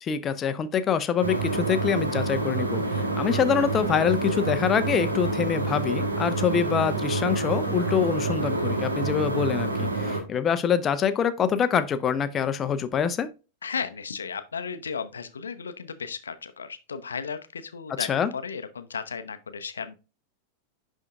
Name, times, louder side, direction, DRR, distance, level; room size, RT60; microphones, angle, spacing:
voice 1, 0.0-13.3 18.0-18.3, left 7 dB, 25° left, 0.7 m, -25 dB
sound 1, 1.2-10.2, right 2 dB, 80° right, 1.2 m, -27 dB
voice 2, 13.6-19.9, left 6 dB, 70° left, 0.7 m, -35 dB
10.5 x 3.7 x 2.4 m
figure-of-eight pair, 90°, 0 cm